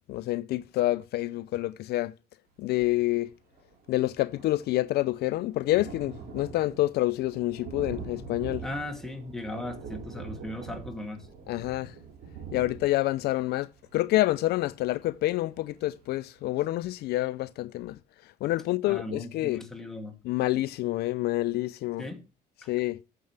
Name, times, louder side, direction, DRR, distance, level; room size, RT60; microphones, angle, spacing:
voice 1, 0.1-2.1 2.6-3.3 3.9-8.6 11.5-11.9 12.5-13.7 13.9-18.0 18.4-19.6 20.2-22.0 22.7-23.0, left 16 dB, 70° left, 0.4 m, -27 dB
Thunder, 3.2-3.3 3.6-16.2 16.7-16.8 17.1-17.2, right 5 dB, 65° right, 3.9 m, -44 dB
voice 2, 8.6-11.3 18.8-20.1 22.0-22.2 22.6-22.7, left 2 dB, ahead, 2.4 m, -37 dB
14.0 x 7.7 x 3.3 m
cardioid pair, 110°, 17 cm